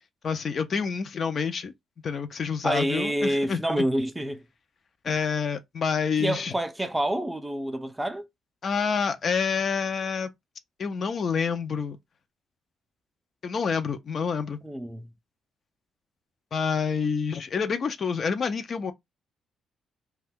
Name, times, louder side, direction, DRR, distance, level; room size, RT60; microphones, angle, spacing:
voice 1, 0.2-1.7 2.0-3.8 5.0-6.5 8.6-10.3 10.8-12.0 13.4-14.6 16.5-18.9, left 6 dB, 50° left, 0.5 m, -28 dB
voice 2, 2.6-4.4 5.1-5.2 6.2-8.3 14.6-15.1, right 1 dB, 10° right, 0.4 m, -28 dB
2.6 x 2.2 x 3.5 m
cardioid pair, 90°, 0 cm